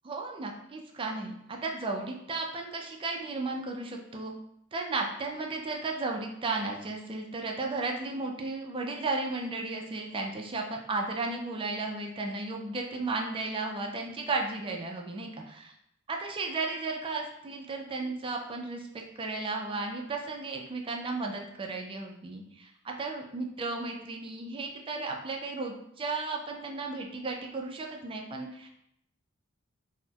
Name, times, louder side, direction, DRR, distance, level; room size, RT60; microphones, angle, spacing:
voice 1, 0.0-4.3 4.7-15.7 16.1-18.9 19.2-28.7, right 3 dB, 25° right, 1 dB, 0.3 m, -34 dB
4.0 x 2.1 x 2.2 m, 0.77 s
head